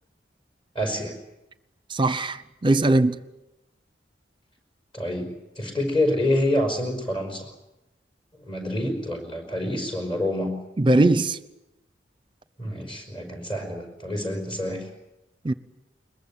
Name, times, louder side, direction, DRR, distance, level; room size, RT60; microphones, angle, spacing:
voice 1, 0.7-1.1 4.9-7.5 8.3-10.6 12.6-14.9, left 1 dB, 30° left, 5.5 m, -27 dB
voice 2, 1.9-3.2 10.8-11.4 15.4-15.5, right 2 dB, 25° right, 0.8 m, -20 dB
22.5 x 21.5 x 9.0 m
head